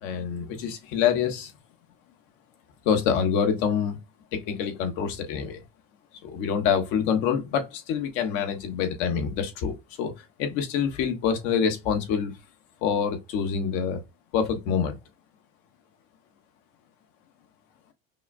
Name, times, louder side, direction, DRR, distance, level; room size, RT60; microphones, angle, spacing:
voice 1, 0.0-1.5 2.8-4.0 4.3-5.6 6.2-10.1 10.4-12.3 12.8-14.0 14.3-14.9, left 7 dB, 75° left, 1.2 m, -26 dB
5.4 x 2.2 x 2.5 m
cardioid pair, 170°, 19 cm